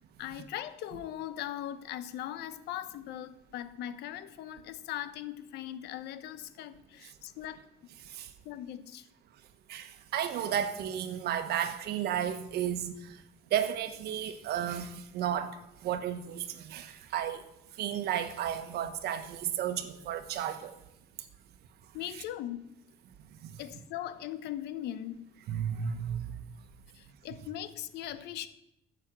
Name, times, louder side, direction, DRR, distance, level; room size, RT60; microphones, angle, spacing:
voice 1, 0.2-7.9 8.4-9.1 21.9-22.7 23.6-25.3 26.9-28.5, left 12 dB, 80° left, 1.0 m, -40 dB
voice 2, 9.7-13.2 13.5-15.6 15.8-17.4 17.8-20.7 23.4-23.6 25.5-26.3, right 9 dB, 70° right, 1.3 m, -33 dB
14.5 x 6.6 x 7.5 m
cardioid pair, 110°, 17 cm